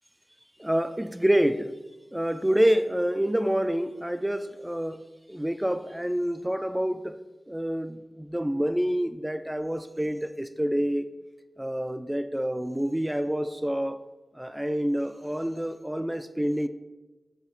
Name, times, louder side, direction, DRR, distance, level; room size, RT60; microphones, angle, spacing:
voice 1, 0.6-1.7 2.1-5.0 5.3-7.2 7.5-11.1 11.6-14.0 14.4-16.7, equal, 10° right, 0.3 m, -27 dB
7.5 x 3.5 x 4.3 m
cardioid pair, 45°, 0 cm